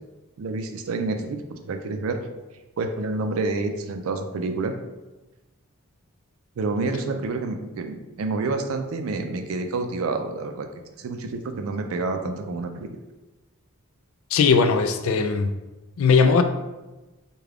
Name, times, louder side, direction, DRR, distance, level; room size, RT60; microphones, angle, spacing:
voice 1, 0.4-2.2 2.8-4.7 6.6-10.7 11.0-12.9, right 3 dB, 70° right, 6 dB, 0.4 m, -28 dB
voice 2, 14.3-15.5 16.0-16.4, left 5 dB, 70° left, 9 dB, 0.3 m, -18 dB
3.6 x 2.2 x 3.3 m, 1.1 s
head